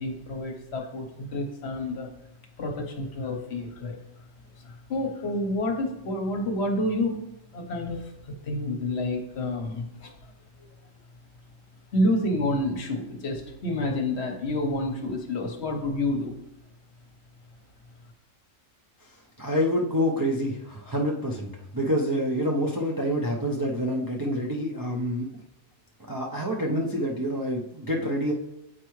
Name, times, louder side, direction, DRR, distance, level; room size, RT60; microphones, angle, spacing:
voice 1, 0.0-2.1 2.6-4.0 4.9-7.2 7.5-8.0 8.4-10.1 11.9-16.3, left 1 dB, 60° left, 3 dB, 1.1 m, -28 dB
voice 2, 19.4-25.3 26.1-28.3, equal, 35° right, -2 dB, 0.3 m, -27 dB
8.0 x 4.6 x 3.1 m, 0.89 s
omnidirectional pair, 1.4 m